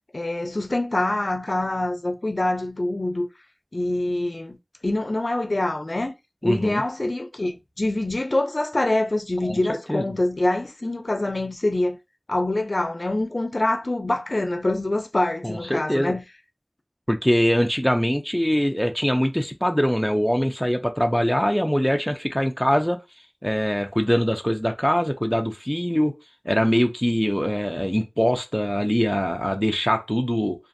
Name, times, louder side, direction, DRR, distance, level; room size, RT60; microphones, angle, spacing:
voice 1, 0.1-3.3 3.7-4.6 4.8-6.1 6.4-12.0 12.3-16.2, left 2 dB, 65° left, 0.4 m, -25 dB
voice 2, 6.4-6.8 9.4-10.0 15.4-16.2 17.1-23.0 23.4-26.1 26.5-30.6, equal, 5° left, 0.4 m, -23 dB
2.5 x 2.4 x 2.5 m
wide cardioid pair, 45°, 0 cm